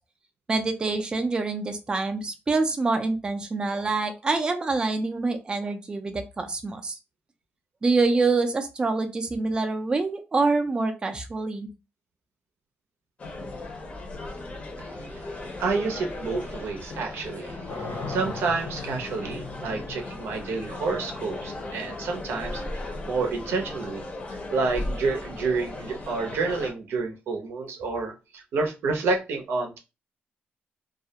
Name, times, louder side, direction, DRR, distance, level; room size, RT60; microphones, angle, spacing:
voice 1, 0.5-7.0 7.8-11.7, right 3 dB, 20° right, 6 dB, 0.3 m, -26 dB
sound 1, 13.2-26.7, left 2 dB, 30° left, 0.6 m, -37 dB
voice 2, 14.8-24.0 24.3-29.8, right 4 dB, 90° right, 3 dB, 0.6 m, -29 dB
sound 2, 17.7-24.6, left 4 dB, 75° left, 0.7 m, -40 dB
2.3 x 2.1 x 2.8 m, 0.27 s
wide cardioid pair, 150°, 4 cm